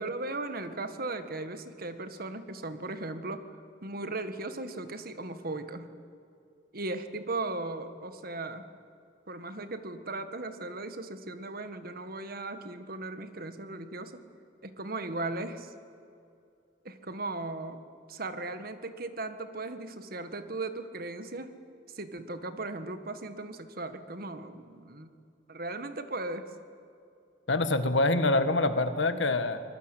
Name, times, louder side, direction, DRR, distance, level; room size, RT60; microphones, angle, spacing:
voice 1, 0.0-3.4 3.8-5.9 6.7-8.7 9.3-14.2 14.6-15.7 16.8-17.8 18.1-21.5 21.9-25.1 25.5-26.5, right 2 dB, 55° right, 9 dB, 1.7 m, -37 dB
voice 2, 27.5-29.6, left 2 dB, 80° left, 10 dB, 1.7 m, -25 dB
24.5 x 21.0 x 9.1 m, 2.6 s
head